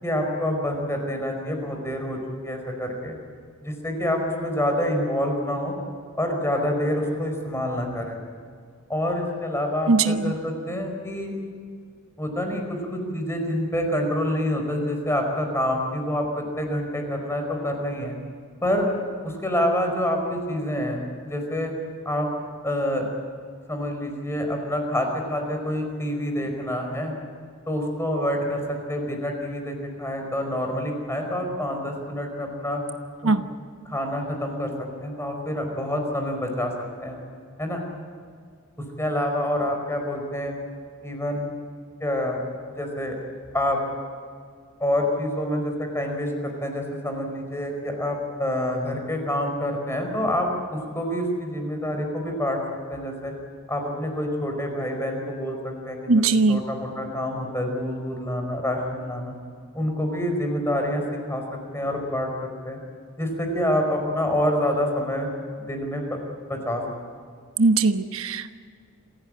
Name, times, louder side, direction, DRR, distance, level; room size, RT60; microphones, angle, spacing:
voice 1, 0.0-3.2 3.6-5.7 6.2-8.2 8.9-11.3 12.2-18.1 18.6-18.9 19.2-21.7 22.0-22.3 22.6-23.1 23.7-27.1 27.7-32.8 33.2-33.4 33.9-34.7 35.0-36.7 37.0-37.2 37.6-37.8 39.0-40.5 41.0-41.5 42.0-42.4 42.7-43.1 43.5-43.8 44.8-52.6 52.9-53.3 53.7-59.3 59.7-61.0 61.3-61.4 61.7-62.8 63.2-65.3 65.6-66.2 66.5-66.8, left 1 dB, 15° left, 3 dB, 4.9 m, -27 dB
voice 2, 9.9-10.3 33.2-33.4 56.1-56.6 67.6-68.6, right 3 dB, 80° right, 9 dB, 1.1 m, -20 dB
27.5 x 16.5 x 8.9 m, 2.1 s
head